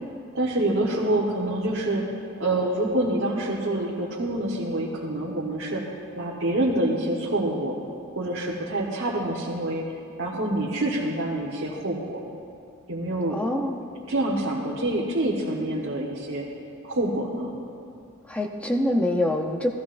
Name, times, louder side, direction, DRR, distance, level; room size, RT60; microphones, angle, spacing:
voice 1, 0.3-2.0 2.4-5.8 6.2-7.7 8.1-9.9 10.2-12.2 12.9-13.4 14.1-16.5 16.8-17.5, right 1 dB, 60° right, -5 dB, 1.3 m, -26 dB
voice 2, 13.3-13.8 18.3-19.7, left 1 dB, 5° left, 1 dB, 0.7 m, -25 dB
16.5 x 13.5 x 2.6 m, 2.5 s
head